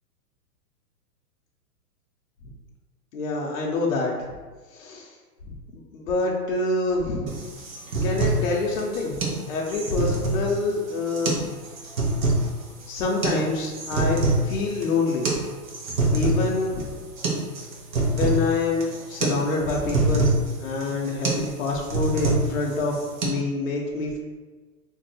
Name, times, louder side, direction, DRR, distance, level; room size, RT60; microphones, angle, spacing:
voice 1, 3.1-4.1 4.7-5.1 5.4-7.3 8.0-11.4 12.4-12.5 12.9-15.3 16.1-16.9 18.1-24.2, left 3 dB, 60° left, -2 dB, 0.6 m, -26 dB
sound 1, 7.3-23.3, right 2 dB, 55° right, 0.8 m, -26 dB
2.6 x 2.1 x 4.0 m, 1.3 s
hypercardioid pair, 180°, 47 cm